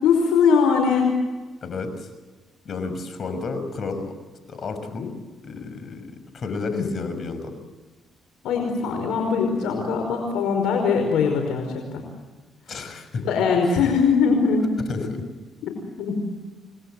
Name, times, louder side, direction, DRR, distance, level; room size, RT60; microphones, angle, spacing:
voice 1, 0.0-1.1 8.4-12.0 13.2-14.6 15.6-16.2, left 5 dB, 90° left, 3 dB, 5.1 m, -21 dB
voice 2, 1.6-2.1 2.6-4.1 4.5-5.1 5.4-6.1 6.3-7.6 12.7-13.2 14.9-15.2, left 4 dB, 50° left, 9 dB, 6.2 m, -31 dB
29.5 x 20.5 x 7.9 m, 1.3 s
cardioid pair, 90°, 0 cm